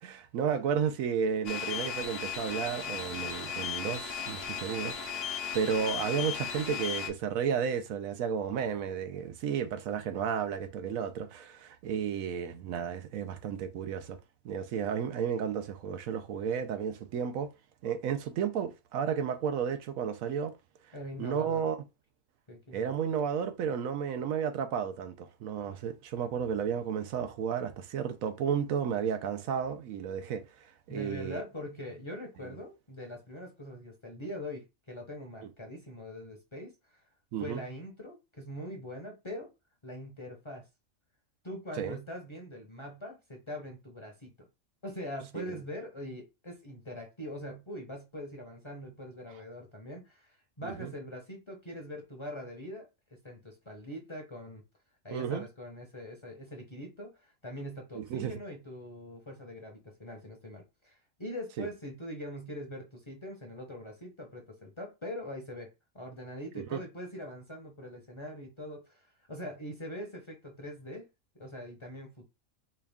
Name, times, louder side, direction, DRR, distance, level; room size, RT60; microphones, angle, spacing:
voice 1, 0.0-5.0 5.5-14.2 14.4-17.5 17.8-20.5 21.2-21.8 22.7-30.4 30.9-31.4 32.4-32.5 37.3-37.6 41.8-42.0 45.4-45.5 50.6-50.9 55.1-55.4 58.0-58.3 61.6-61.7 66.6-66.8, right 7 dB, 80° right, 1.0 m, -32 dB
sound 1, 1.5-7.1, left 7 dB, 55° left, 0.9 m, -36 dB
voice 2, 20.9-21.6 22.5-23.0 23.7-23.8 30.9-36.7 37.4-39.5 39.8-40.6 41.4-44.3 44.8-52.9 53.2-54.6 55.0-65.7 65.9-71.1 71.3-72.3, left 1 dB, 25° left, 0.8 m, -42 dB
4.5 x 2.3 x 3.4 m
omnidirectional pair, 1.4 m